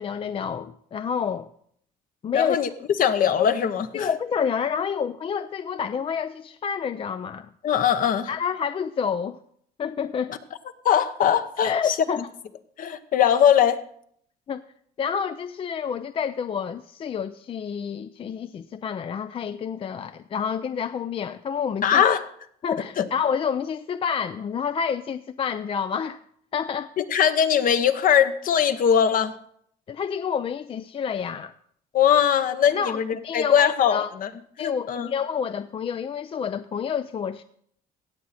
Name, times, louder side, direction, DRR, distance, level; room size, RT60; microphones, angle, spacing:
voice 1, 0.0-1.5 2.2-2.6 3.9-7.5 8.3-9.4 9.8-10.4 11.6-12.2 14.5-14.6 15.0-22.0 22.6-26.2 26.5-26.9 29.9-31.5 32.7-34.1 34.6-37.4, left 7 dB, 35° left, 0.4 m, -28 dB
voice 2, 2.3-2.7 3.0-4.1 7.6-8.3 10.8-12.2 12.8-13.8 21.8-22.2 23.0-23.1 27.0-29.3 31.9-34.3 34.6-35.1, left 8 dB, 55° left, 0.9 m, -21 dB
17.0 x 7.7 x 4.2 m
cardioid pair, 110°, 17 cm